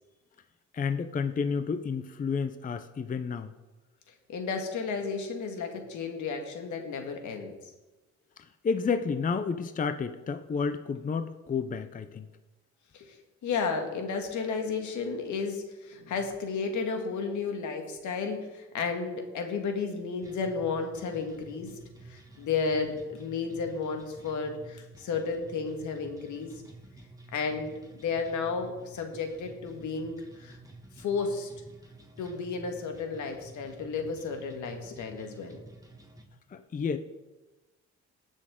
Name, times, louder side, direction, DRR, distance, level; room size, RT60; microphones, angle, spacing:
voice 1, 0.7-3.5 8.6-12.3 36.5-37.0, left 5 dB, 25° left, 10 dB, 0.6 m, -30 dB
voice 2, 4.3-7.5 12.9-13.2 13.4-21.7 22.1-26.5 27.3-30.6 31.0-31.5 32.2-35.6, left 5 dB, 75° left, 4 dB, 1.7 m, -33 dB
sound 1, 20.2-36.2, right 2 dB, 10° right, 1.8 m, -51 dB
19.0 x 6.4 x 3.7 m, 1.1 s
cardioid pair, 90°, 30 cm